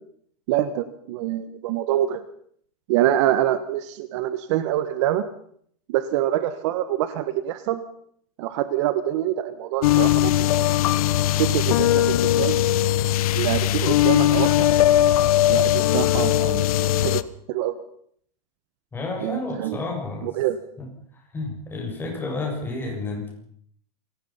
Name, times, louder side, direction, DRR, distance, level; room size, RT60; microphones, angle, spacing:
voice 1, 0.5-2.2 2.9-5.2 5.9-7.8 8.4-10.6 11.4-12.6 13.3-14.7 15.5-16.6 17.0-17.7 19.2-19.8 20.2-20.6, right 12 dB, 50° right, 12 dB, 1.5 m, -25 dB
sound 1, 9.8-17.2, left 13 dB, 65° left, 1.2 m, -19 dB
voice 2, 18.9-20.3 20.8-20.9 21.1-23.3, left 3 dB, 10° left, 0 dB, 6.8 m, -31 dB
27.0 x 19.5 x 5.8 m, 0.64 s
supercardioid pair, 165°, 20 cm